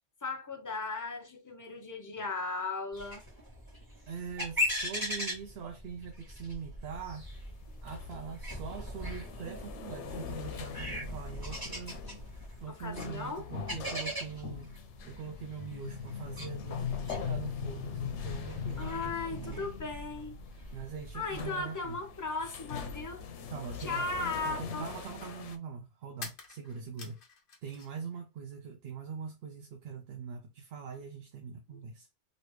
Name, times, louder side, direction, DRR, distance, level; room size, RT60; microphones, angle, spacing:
voice 1, 0.2-3.2 12.7-13.5 18.8-20.4 21.1-23.2 23.8-24.9 31.7-31.8, left 3 dB, 25° left, 0.5 m, -37 dB
sound 1, 2.9-21.5, left 1 dB, 20° right, 1.5 m, -40 dB
voice 2, 4.1-7.3 7.8-12.0 12.6-14.7 15.0-19.7 20.7-22.0 23.5-24.1 24.4-27.2 27.6-32.1, right 6 dB, 65° right, 0.8 m, -42 dB
sound 2, 6.9-25.6, left 7 dB, 90° left, 0.9 m, -41 dB
sound 3, 26.2-28.1 28.4-29.2, left 4 dB, 55° left, 0.9 m, -48 dB
3.0 x 2.7 x 3.1 m
omnidirectional pair, 1.2 m